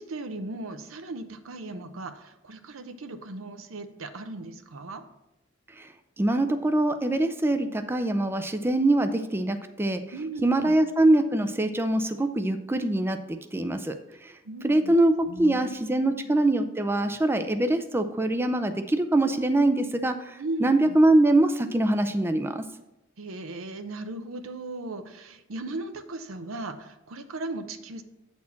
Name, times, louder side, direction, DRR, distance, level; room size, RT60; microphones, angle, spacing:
voice 1, 0.0-5.0 10.1-10.8 14.4-15.0 15.3-15.8 16.1-16.2 20.4-21.0 23.2-28.0, right 2 dB, 80° right, 8 dB, 0.7 m, -37 dB
voice 2, 6.2-10.0 10.4-13.2 13.5-14.0 14.2-14.3 14.6-22.6, right 1 dB, 10° right, 8 dB, 0.4 m, -23 dB
8.4 x 4.3 x 5.7 m, 0.92 s
head